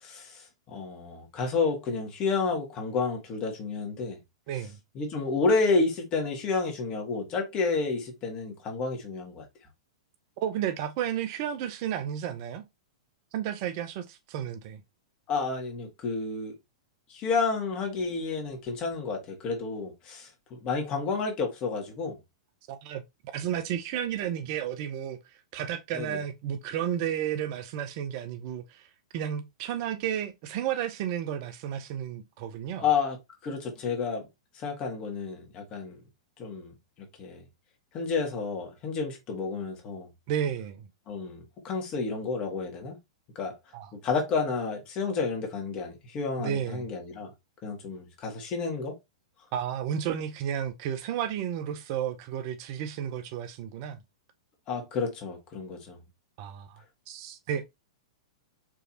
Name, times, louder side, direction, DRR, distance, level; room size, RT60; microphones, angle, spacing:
voice 1, 0.0-4.2 4.9-9.4 15.3-16.6 17.1-22.2 25.9-26.2 32.8-33.2 33.4-34.3 34.5-36.0 36.4-36.7 37.2-37.4 37.9-40.1 41.1-43.0 43.3-43.5 44.0-47.3 47.6-48.9 54.7-56.0, left 4 dB, 30° left, 1.6 m, -30 dB
voice 2, 10.4-12.7 13.3-14.8 22.7-23.0 23.3-28.9 29.1-32.8 40.3-40.9 43.7-43.9 46.4-46.8 49.5-54.0 56.4-56.8 57.1-57.7, right 9 dB, 40° right, 0.5 m, -32 dB
4.7 x 3.1 x 2.7 m
figure-of-eight pair, 100°, 3 cm